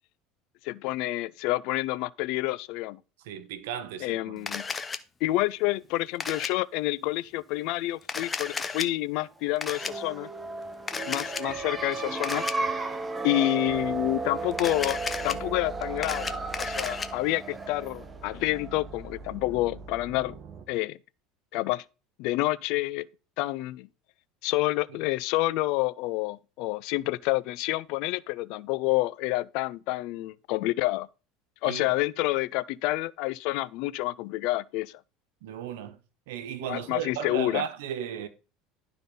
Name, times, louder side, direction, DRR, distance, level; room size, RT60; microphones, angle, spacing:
voice 1, 0.6-3.0 4.0-4.7 5.2-10.3 11.1-12.4 13.2-20.4 20.7-21.0 21.5-21.8 22.2-23.1 23.4-23.9 24.4-31.1 31.6-35.0 36.7-37.6, left 18 dB, 65° left, 0.4 m, -28 dB
voice 2, 3.2-4.5 31.6-31.9 35.4-36.0 36.3-38.3, right 9 dB, 85° right, 1.2 m, -35 dB
Camera, 4.5-5.0 6.2-6.5 8.0-8.9 9.6-9.9 10.9-11.4 12.2-12.5 14.5-15.3 15.8-17.1, left 5 dB, 20° left, 0.7 m, -33 dB
sound 1, 9.6-19.1, right 3 dB, 15° right, 1.0 m, -34 dB
sound 2, 13.7-20.7, right 4 dB, 35° right, 1.2 m, -44 dB
11.5 x 3.9 x 5.4 m
supercardioid pair, 125°, 0 cm